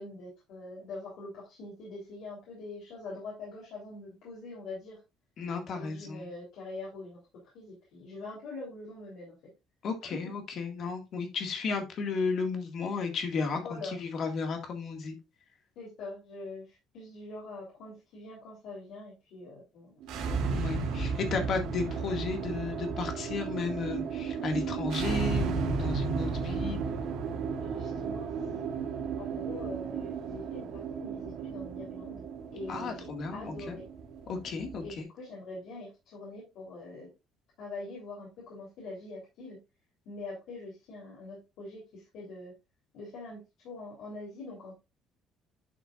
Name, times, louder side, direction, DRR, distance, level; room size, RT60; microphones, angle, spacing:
voice 1, 0.0-5.0 5.7-7.2 7.5-9.4 10.0-10.2 13.5-13.9 15.7-20.2 20.9-21.0 27.5-28.7 29.2-32.2 32.5-33.9 34.8-37.1 37.6-39.6 40.0-42.5 42.9-44.8, left 2 dB, 65° left, -4 dB, 3.4 m, -44 dB
voice 2, 5.4-6.3 9.8-15.2 20.5-26.9 32.7-33.8 34.3-35.0, left 4 dB, 45° left, 5 dB, 1.9 m, -34 dB
sound 1, 20.0-35.0, right 5 dB, 75° right, 2.5 m, -34 dB
11.0 x 5.7 x 2.5 m, 0.25 s
cardioid pair, 160°, 0 cm